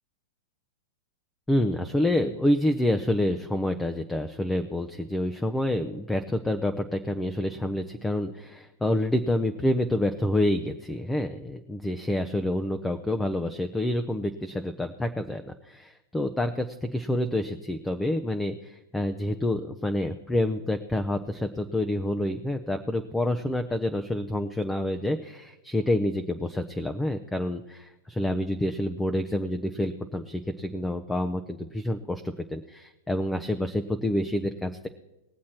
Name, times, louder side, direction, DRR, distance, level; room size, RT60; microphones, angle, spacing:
voice 1, 1.5-34.9, left 1 dB, 10° left, 6 dB, 0.7 m, -28 dB
20.0 x 7.4 x 4.4 m, 0.98 s
hypercardioid pair, 110°, 0 cm